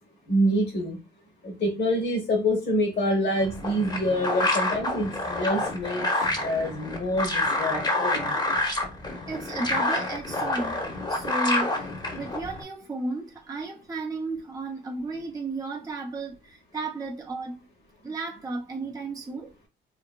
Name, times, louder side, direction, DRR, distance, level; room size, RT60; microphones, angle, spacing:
voice 1, 0.3-1.0 1.4-6.1 6.4-8.3, equal, 55° left, 1.0 m, -26 dB
sound 1, 3.4-12.6, left 2 dB, 20° left, 0.8 m, -28 dB
voice 2, 9.3-10.8 11.1-11.8 12.2-17.6 18.0-19.5, right 3 dB, 15° right, 0.5 m, -33 dB
2.8 x 2.5 x 2.2 m
cardioid pair, 90°, 20 cm